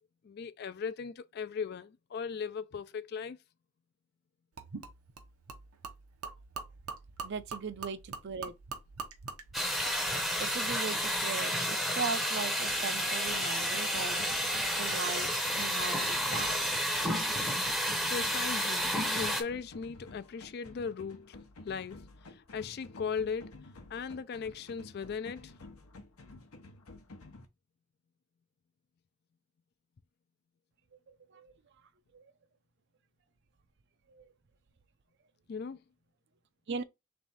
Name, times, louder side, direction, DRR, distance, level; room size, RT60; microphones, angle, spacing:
voice 1, 0.2-3.4 18.1-21.4 21.7-23.5 23.9-25.5 35.5-35.8, left 6 dB, 45° left, 0.3 m, -38 dB
Gurgling / Liquid, 4.6-11.4, right 5 dB, 85° right, 0.9 m, -45 dB
voice 2, 7.2-8.5 10.1-14.2 14.8-16.8 30.9-31.5 32.1-32.3 34.1-34.3 36.7-36.8, right 5 dB, 50° right, 0.5 m, -39 dB
sound 1, 9.5-19.4, equal, ahead, 0.7 m, -31 dB
sound 2, 12.7-27.4, left 2 dB, 85° left, 0.9 m, -52 dB
3.5 x 3.3 x 4.1 m
head